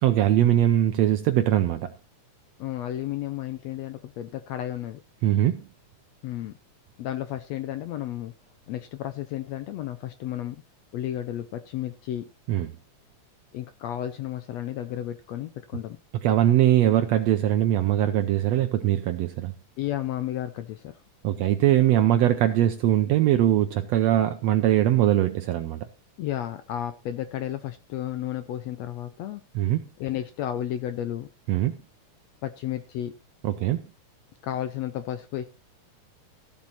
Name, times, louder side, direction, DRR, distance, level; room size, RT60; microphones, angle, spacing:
voice 1, 0.0-1.9 5.2-5.7 12.5-12.7 16.2-19.5 21.2-25.9 29.5-29.8 31.5-31.8 33.4-33.8, right 12 dB, 75° right, 1.5 m, -21 dB
voice 2, 2.6-5.0 6.2-6.5 7.0-8.3 8.7-10.6 10.9-12.3 13.5-16.0 18.8-18.9 19.8-21.0 26.2-29.4 30.0-31.3 32.4-33.2 34.4-35.5, left 12 dB, 75° left, 1.6 m, -32 dB
14.5 x 7.4 x 4.2 m
omnidirectional pair, 3.7 m